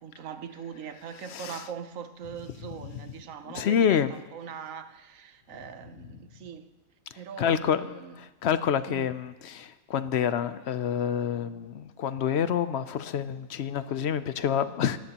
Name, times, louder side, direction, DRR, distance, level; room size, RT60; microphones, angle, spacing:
voice 1, 0.0-6.7 7.2-8.2 8.9-9.1, right 7 dB, 65° right, 1.1 m, -41 dB
voice 2, 1.3-1.6 3.5-4.1 7.4-15.0, left 8 dB, 60° left, 0.7 m, -27 dB
29.5 x 14.0 x 2.9 m
omnidirectional pair, 1.6 m